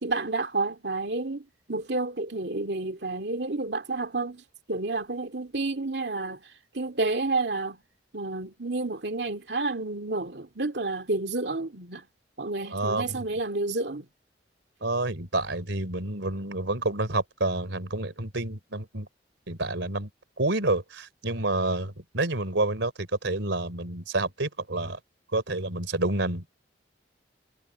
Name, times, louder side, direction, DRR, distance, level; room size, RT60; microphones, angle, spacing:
voice 1, 0.0-4.4 4.7-6.4 6.7-7.8 8.1-12.0 12.4-14.1, right 3 dB, 65° right, 2.3 m, -30 dB
voice 2, 12.7-13.3 14.8-19.1 19.5-20.1 20.4-25.0 25.3-26.5, right 2 dB, 90° right, 3.7 m, -29 dB
head